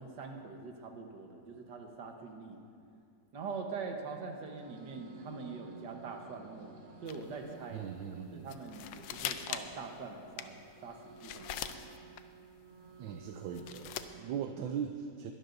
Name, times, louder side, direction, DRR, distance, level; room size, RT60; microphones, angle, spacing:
voice 1, 0.0-2.6 3.3-7.8 8.3-11.9, right 4 dB, 65° right, 3 dB, 1.8 m, -44 dB
sound 1, 4.5-14.4, right 5 dB, 45° right, 1.3 m, -54 dB
sound 2, 7.1-7.5 7.8-7.9 8.1-8.2 8.5-9.9 10.3-12.2 12.8-14.0, left 10 dB, 80° left, 1.4 m, -41 dB
voice 2, 7.7-8.6 13.0-15.3, right 8 dB, 80° right, 5 dB, 1.3 m, -39 dB
21.5 x 12.5 x 2.7 m, 2.3 s
omnidirectional pair, 2.1 m